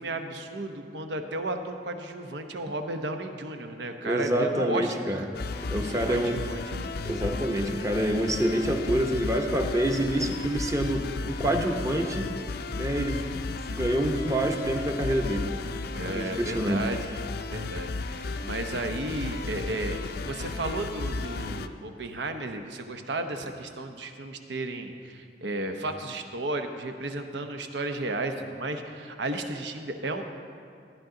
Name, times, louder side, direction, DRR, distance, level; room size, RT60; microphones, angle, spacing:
voice 1, 0.0-5.3 5.8-6.9 15.9-17.1 17.5-30.2, right 2 dB, 85° right, 6 dB, 0.9 m, -34 dB
voice 2, 4.0-5.2 5.7-6.4 7.0-12.3 12.7-13.2 13.7-15.5 16.0-16.8, right 1 dB, 20° right, 3 dB, 0.8 m, -27 dB
sound 1, 5.3-21.7, left 3 dB, 60° left, 0.4 m, -34 dB
14.0 x 10.5 x 3.8 m, 2.3 s
head